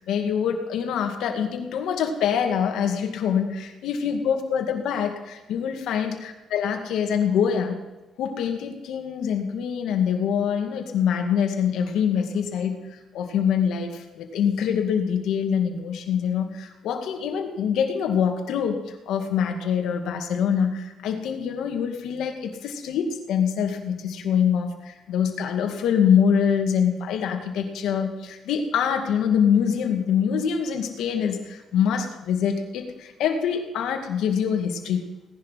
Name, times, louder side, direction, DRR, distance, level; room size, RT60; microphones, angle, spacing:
voice 1, 0.0-7.8 8.2-35.1, left 7 dB, 85° left, 4 dB, 2.2 m, -25 dB
17.5 x 11.0 x 5.8 m, 1.0 s
cardioid pair, 90°, 0 cm